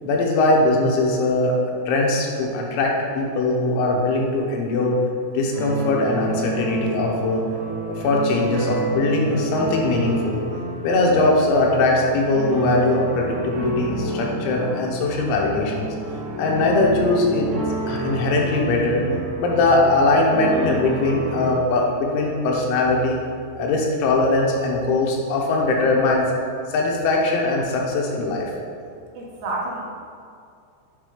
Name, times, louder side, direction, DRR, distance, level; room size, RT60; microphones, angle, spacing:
voice 1, 0.0-5.0 5.3-7.4 7.7-10.4 10.8-15.9 16.4-17.5 17.9-19.0 19.4-23.2 23.6-26.3 26.7-28.5, left 2 dB, 85° left, -1 dB, 3.4 m, -21 dB
sound 1, 5.5-21.5, right 1 dB, 55° right, 2.1 m, -29 dB
voice 2, 29.1-30.0, right 2 dB, 75° right, -3 dB, 2.8 m, -29 dB
9.3 x 3.3 x 5.0 m, 2.4 s
omnidirectional pair, 5.3 m